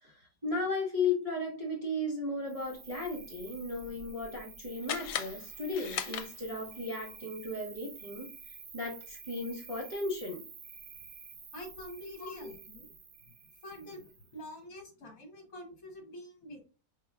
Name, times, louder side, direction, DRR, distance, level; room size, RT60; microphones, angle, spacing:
voice 1, 0.0-8.3 8.7-10.4 12.2-12.5, left 2 dB, 25° right, -5 dB, 0.8 m, -35 dB
Cricket, 2.5-14.4, right 5 dB, 55° right, 1.1 m, -50 dB
sound 1, 4.8-6.8, left 10 dB, 80° left, 1.1 m, -38 dB
voice 2, 11.5-12.9 13.6-14.1 14.3-16.6, equal, 60° left, 3 dB, 1.4 m, -46 dB
4.7 x 3.3 x 2.3 m, 0.35 s
omnidirectional pair, 1.8 m